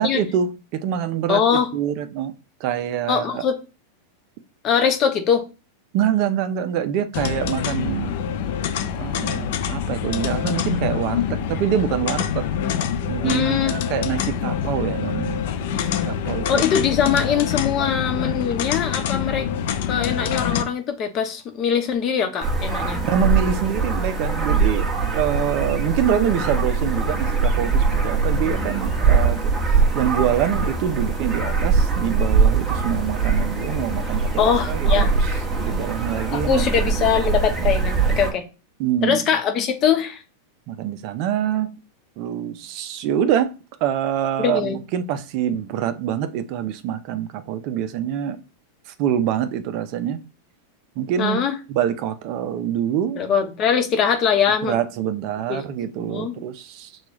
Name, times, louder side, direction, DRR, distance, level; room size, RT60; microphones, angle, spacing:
voice 1, 0.0-2.3 2.6-3.4 5.9-8.1 9.0-12.5 13.1-15.4 15.7-16.6 23.0-29.4 29.7-35.3 35.5-37.1 37.6-37.7 38.8-39.2 40.7-41.7 42.2-43.5 43.8-48.4 48.9-50.2 51.0-51.4 51.7-53.2 54.6-56.9, right 9 dB, 50° right, 0.5 m, -25 dB
voice 2, 1.3-1.7 3.1-3.5 4.6-5.4 13.2-13.8 16.5-19.5 19.9-23.0 34.4-35.1 36.3-38.4 39.0-40.2 44.4-44.8 51.2-51.5 53.2-54.8 55.5-55.6 56.0-56.4, left 7 dB, 40° left, 0.9 m, -22 dB
sound 1, 7.1-20.6, left 8 dB, 65° left, 0.4 m, -25 dB
sound 2, 22.4-38.3, right 4 dB, 15° right, 1.1 m, -22 dB
6.1 x 2.3 x 3.0 m
supercardioid pair, 130°, 0 cm